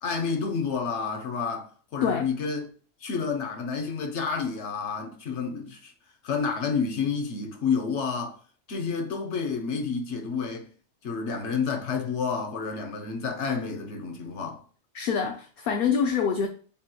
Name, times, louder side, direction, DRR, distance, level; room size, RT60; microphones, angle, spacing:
voice 1, 0.0-2.7 3.0-5.9 6.2-8.3 8.7-10.7 11.0-14.6, left 5 dB, 85° left, 1.1 m, -29 dB
voice 2, 14.9-16.5, left 6 dB, 65° left, 0.7 m, -25 dB
7.0 x 2.9 x 2.2 m
omnidirectional pair, 1.1 m